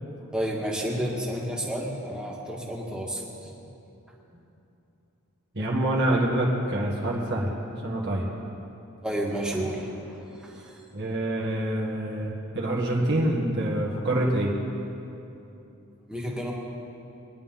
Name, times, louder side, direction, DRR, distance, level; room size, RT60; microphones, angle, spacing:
voice 1, 0.2-3.5 4.3-4.4 9.0-10.8 16.1-16.5, equal, 5° right, -3 dB, 1.8 m, -31 dB
voice 2, 5.5-7.5 7.8-8.3 10.9-14.5, right 1 dB, 50° right, -4 dB, 1.9 m, -26 dB
22.0 x 11.0 x 3.8 m, 2.8 s
head